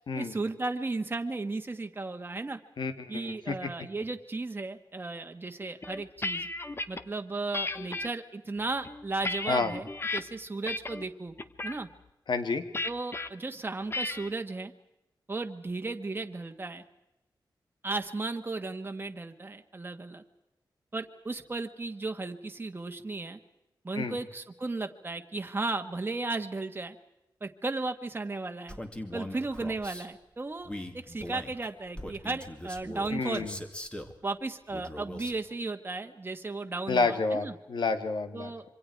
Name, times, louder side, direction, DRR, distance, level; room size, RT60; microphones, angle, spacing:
voice 1, 0.0-2.6 3.1-6.5 6.9-9.9 10.1-11.3 11.6-11.9 12.8-14.7 15.3-16.8 17.8-20.2 20.9-23.4 23.8-27.0 27.4-28.8 29.1-33.5 34.2-37.5 38.3-38.6, right 3 dB, 25° right, 6 dB, 1.6 m, -35 dB
voice 2, 2.8-3.7 9.5-9.7 12.3-12.6 23.9-24.2 33.1-33.6 36.9-38.5, left 4 dB, 70° left, 8 dB, 2.0 m, -29 dB
sound 1, 5.8-7.0 7.5-8.1 8.7-10.2 10.7-11.1 11.4-11.8 12.7-13.3 13.9-14.3, left 2 dB, 30° left, 1.1 m, -34 dB
Male speech man speaking, 28.7-30.1 30.6-34.2 34.7-35.4, left 1 dB, 15° left, 2.2 m, -41 dB
27.0 x 25.0 x 4.7 m, 0.95 s
wide cardioid pair, 130°, 8 cm